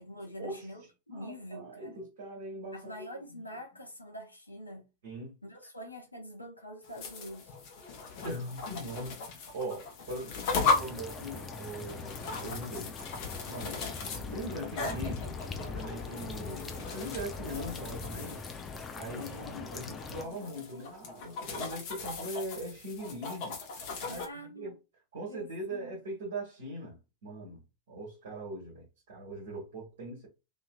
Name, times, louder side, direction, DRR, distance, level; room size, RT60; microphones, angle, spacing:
voice 1, 0.0-2.0 2.7-4.9 5.4-7.5 24.1-24.7 25.3-25.9, equal, 85° left, 0.8 m, -45 dB
voice 2, 1.1-3.4 5.0-5.4 8.2-12.9 13.5-18.4 18.8-23.6 24.0-24.7 25.1-27.6 27.9-30.3, right 1 dB, 60° right, 1.2 m, -41 dB
sound 1, 6.8-24.3, left 4 dB, 45° left, 0.9 m, -37 dB
sound 2, 10.7-20.2, left 4 dB, 15° left, 0.5 m, -41 dB
2.8 x 2.8 x 2.3 m
figure-of-eight pair, 90°, 0 cm